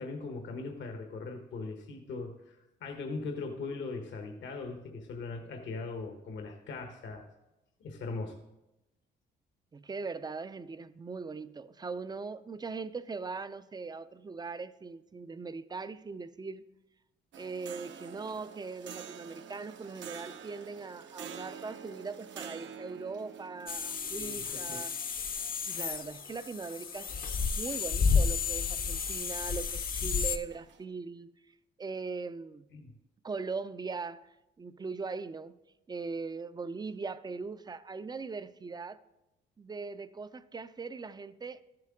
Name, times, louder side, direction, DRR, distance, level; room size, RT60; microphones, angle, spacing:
voice 1, 0.0-7.3 7.8-8.4 24.1-24.8 32.7-32.9, left 3 dB, 70° left, 1.1 m, -40 dB
voice 2, 9.7-16.7 17.4-24.9 25.6-27.1 27.3-31.3 31.8-32.7 33.2-34.2 34.6-35.5 35.9-39.0 39.6-41.6, right 4 dB, 20° right, 0.4 m, -40 dB
sound 1, 17.3-30.8, right 7 dB, 70° right, 0.8 m, -49 dB
sound 2, 23.7-30.4, left 5 dB, 45° left, 0.7 m, -32 dB
13.5 x 7.6 x 3.7 m
cardioid pair, 90°, 20 cm